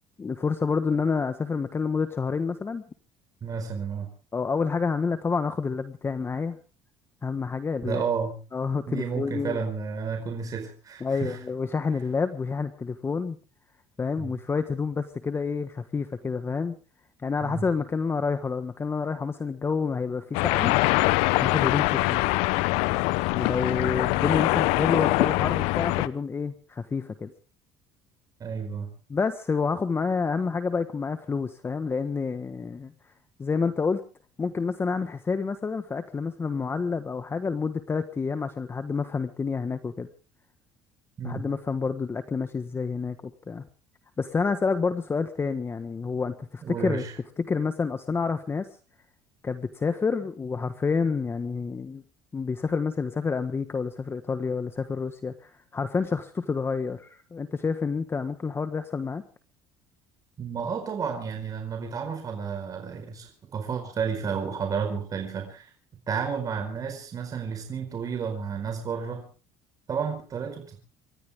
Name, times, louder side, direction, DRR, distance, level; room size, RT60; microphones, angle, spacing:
voice 1, 0.2-2.8 4.3-6.6 7.2-8.0 8.5-9.6 11.0-13.4 14.0-16.8 17.2-20.7 21.4-22.2 23.3-27.3 29.1-32.9 33.4-34.0 34.4-40.1 41.2-43.2 43.5-43.7 44.2-47.0 47.4-48.7 49.4-52.0 52.3-59.2, left 5 dB, 25° left, 10 dB, 1.4 m, -28 dB
voice 2, 3.4-4.1 7.8-8.4 8.9-11.4 14.2-14.3 17.4-17.7 28.4-28.9 41.2-41.5 46.6-47.2 60.4-65.7 66.1-69.3 69.9-70.8, right 6 dB, 35° right, 4 dB, 4.7 m, -31 dB
sound 1, 20.3-26.1, left 20 dB, 80° left, 0.8 m, -23 dB
27.5 x 14.0 x 3.6 m, 0.36 s
supercardioid pair, 105°, 10 cm